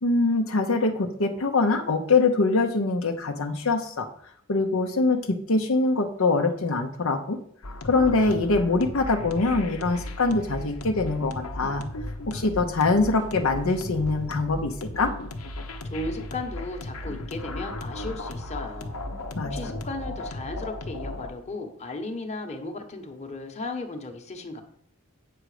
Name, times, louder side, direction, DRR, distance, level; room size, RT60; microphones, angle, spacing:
voice 1, 0.0-4.1 4.5-7.4 7.8-11.8 12.3-15.1 19.3-19.7, left 3 dB, 65° left, 3 dB, 0.8 m, -23 dB
sound 1, 7.6-21.3, left 1 dB, 90° left, 1.1 m, -36 dB
voice 2, 15.8-19.0 19.4-24.6, left 2 dB, 30° left, 3 dB, 1.2 m, -35 dB
8.8 x 6.2 x 5.0 m, 0.65 s
head